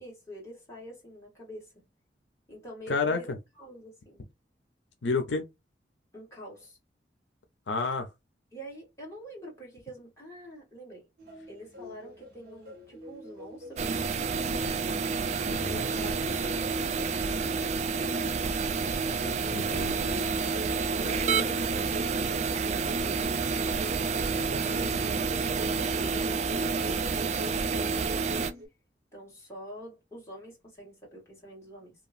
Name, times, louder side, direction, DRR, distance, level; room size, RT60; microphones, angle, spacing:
voice 1, 0.0-1.7 2.5-4.2 6.1-6.8 8.5-11.1 11.5-14.9 15.5-17.2 20.4-22.4 24.4-27.2 27.4-28.4 29.1-31.9, equal, 15° left, 1.8 m, -46 dB
voice 2, 2.9-3.4 5.0-5.4 7.7-8.1 15.4-15.8 19.5-20.0, left 4 dB, 85° left, 0.6 m, -30 dB
sound 1, 11.2-28.7, left 1 dB, 55° right, 1.0 m, -43 dB
sound 2, 13.8-28.5, right 5 dB, 40° right, 0.3 m, -29 dB
3.0 x 2.3 x 2.4 m
head